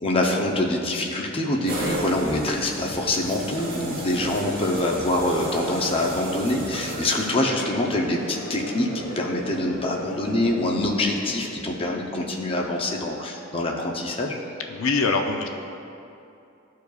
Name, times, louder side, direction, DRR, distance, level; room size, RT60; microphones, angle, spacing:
voice 1, 0.0-14.4, left 1 dB, 25° left, -1 dB, 0.7 m, -25 dB
sound 1, 1.7-7.7, right 2 dB, 45° right, 1.2 m, -34 dB
Crowd, 2.6-12.7, left 1 dB, 50° left, 1.1 m, -38 dB
voice 2, 14.7-15.5, left 4 dB, 75° left, 3 dB, 0.5 m, -23 dB
13.5 x 4.7 x 2.4 m, 2.7 s
head